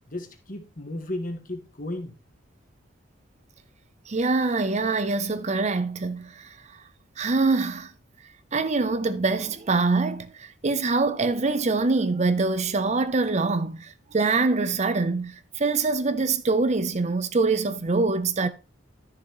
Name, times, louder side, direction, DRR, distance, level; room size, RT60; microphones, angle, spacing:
voice 1, 0.1-2.1, left 1 dB, 45° left, 1.6 m, -34 dB
voice 2, 4.1-6.6 7.2-7.9 8.5-18.5, right 3 dB, 35° right, 0.6 m, -24 dB
12.0 x 6.8 x 3.0 m
head